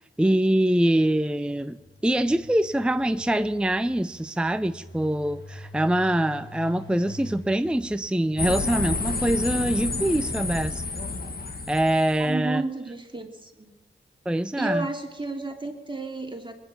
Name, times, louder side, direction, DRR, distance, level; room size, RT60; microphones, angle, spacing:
voice 1, 0.0-10.8 11.7-12.6 14.3-14.9, right 1 dB, 5° right, 10 dB, 0.6 m, -24 dB
Engine, 1.5-9.5, left 1 dB, 65° left, 4.2 m, -46 dB
sound 1, 8.4-12.3, left 3 dB, 45° left, 1.5 m, -30 dB
voice 2, 12.2-13.7 14.6-16.5, right 2 dB, 20° right, 2 dB, 2.8 m, -32 dB
20.5 x 9.4 x 7.3 m, 1.2 s
cardioid pair, 50°, 21 cm